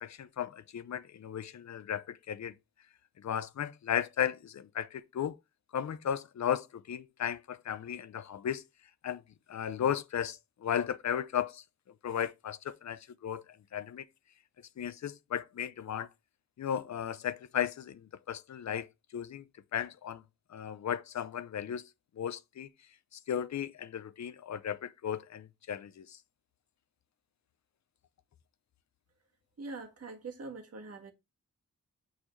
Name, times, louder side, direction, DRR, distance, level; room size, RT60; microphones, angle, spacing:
voice 1, 0.0-2.5 3.2-5.4 5.7-8.6 9.0-9.2 9.5-11.6 12.0-13.4 13.7-14.0 14.8-16.1 16.6-18.9 19.1-19.4 19.7-20.2 20.5-21.8 22.2-22.7 23.1-26.2, left 9 dB, 65° left, 0.6 m, -35 dB
voice 2, 29.6-31.1, right 3 dB, 55° right, 1.6 m, -43 dB
8.7 x 4.0 x 3.2 m
wide cardioid pair, 135°, 31 cm